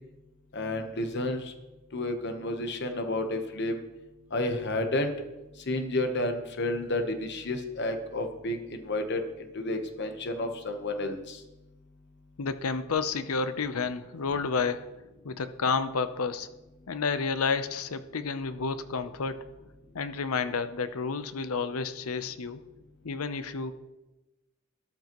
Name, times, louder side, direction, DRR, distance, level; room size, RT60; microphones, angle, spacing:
voice 1, 0.5-1.5 1.9-3.8 4.3-5.1 5.7-9.2 9.5-11.4, left 1 dB, 50° left, 5 dB, 1.0 m, -31 dB
voice 2, 12.4-14.9 15.2-16.5 16.9-19.5 19.9-22.6 23.0-23.7, left 5 dB, 75° left, 11 dB, 0.7 m, -30 dB
13.0 x 11.5 x 3.0 m, 1.1 s
head